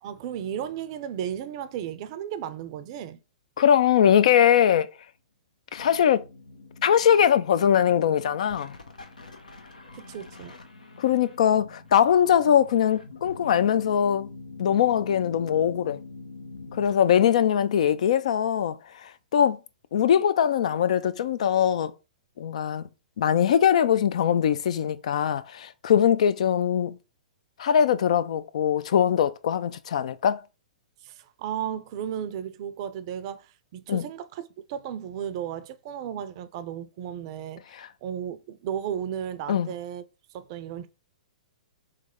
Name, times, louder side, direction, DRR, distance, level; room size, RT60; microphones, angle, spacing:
voice 1, 0.0-3.2 9.9-10.5 31.0-37.6 38.0-40.0 40.3-40.9, right 9 dB, 45° right, 0.5 m, -34 dB
voice 2, 3.6-4.9 5.7-6.2 6.8-8.7 11.0-14.3 14.6-16.0 16.7-19.6 19.9-21.9 22.4-22.8 23.2-27.0 27.6-30.4 33.9-34.0 37.8-37.9 39.5-39.7, left 9 dB, 60° left, 0.4 m, -22 dB
sound 1, 5.8-16.9, left 3 dB, 80° left, 0.8 m, -45 dB
3.3 x 3.3 x 3.6 m
figure-of-eight pair, 115°, 4 cm